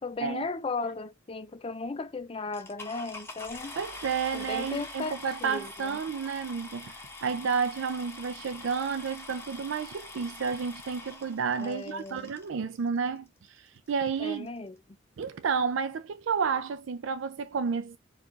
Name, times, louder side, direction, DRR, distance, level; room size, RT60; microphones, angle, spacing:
voice 1, 0.0-3.8 4.3-6.0 11.6-12.3 14.2-14.8, left 3 dB, 25° left, 0.4 m, -36 dB
sound 1, 2.5-12.5 13.3-13.4 13.9-14.0 14.2-14.5, left 2 dB, 10° left, 0.9 m, -44 dB
voice 2, 3.8-6.9 7.2-14.5 15.2-18.0, right 6 dB, 75° right, 0.4 m, -31 dB
4.5 x 2.4 x 3.9 m
head